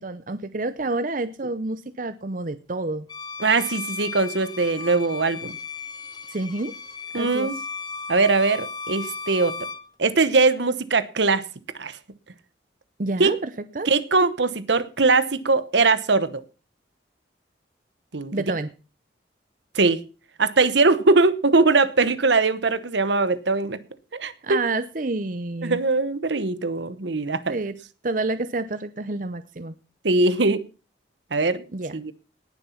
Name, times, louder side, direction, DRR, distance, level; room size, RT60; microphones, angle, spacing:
voice 1, 0.0-3.1 6.3-6.7 7.1-7.5 13.0-13.5 13.7-13.9 18.3-18.7 24.4-25.8 27.5-27.7 28.0-29.7 31.7-32.0, right 2 dB, 45° right, 0.7 m, -28 dB
Bowed string instrument, 3.1-9.9, left 4 dB, 25° left, 1.0 m, -35 dB
voice 2, 3.4-5.6 7.1-7.5 8.1-9.6 10.0-11.5 11.8-12.0 13.2-13.3 13.9-16.4 18.1-18.3 19.7-20.0 20.4-23.8 24.1-24.6 25.6-27.4 30.0-30.6 31.3-31.6 31.9-32.1, right 3 dB, 70° right, 1.0 m, -21 dB
18.5 x 7.0 x 5.7 m
head